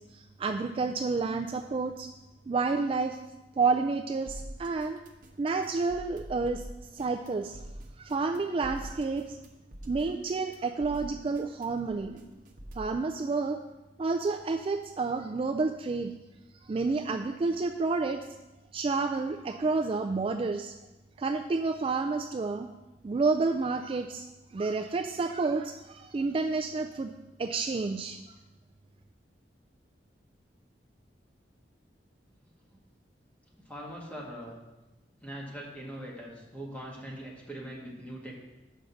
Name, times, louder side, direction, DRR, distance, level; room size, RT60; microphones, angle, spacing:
voice 1, 0.0-2.1 2.5-3.2 3.6-5.0 5.4-6.7 6.9-7.6 8.0-9.4 9.9-12.2 12.7-13.6 14.0-16.1 16.6-18.3 18.7-20.8 21.2-22.7 23.0-24.2 24.5-27.1 27.4-28.2, right 4 dB, 30° right, 6 dB, 0.3 m, -30 dB
sound 1, 4.3-13.0, right 1 dB, 50° right, 1.0 m, -45 dB
voice 2, 32.4-32.8 33.7-34.6 35.2-38.4, equal, 10° left, -4 dB, 1.8 m, -42 dB
6.4 x 5.2 x 6.8 m, 1.0 s
head